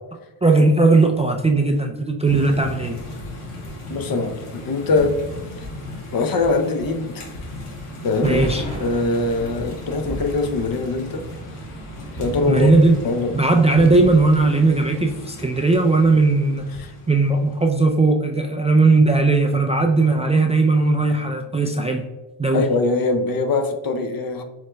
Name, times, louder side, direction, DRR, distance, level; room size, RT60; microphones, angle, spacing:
voice 1, 0.4-3.0 8.2-8.6 12.5-13.0 13.3-16.7 17.1-22.0 22.4-22.6, right 3 dB, 15° right, 2 dB, 0.3 m, -17 dB
sound 1, 2.2-17.8, left 1 dB, 90° left, 1.2 m, -36 dB
voice 2, 3.9-5.2 5.6-5.7 6.1-7.4 8.0-8.4 8.8-11.3 12.2-12.7 13.0-13.4 16.8-16.9 22.5-24.4, left 3 dB, 45° left, 7 dB, 0.8 m, -22 dB
sound 2, 8.2-15.0, equal, 15° left, 1.6 m, -34 dB
7.4 x 3.2 x 2.2 m, 1.1 s
cardioid pair, 75°, 50 cm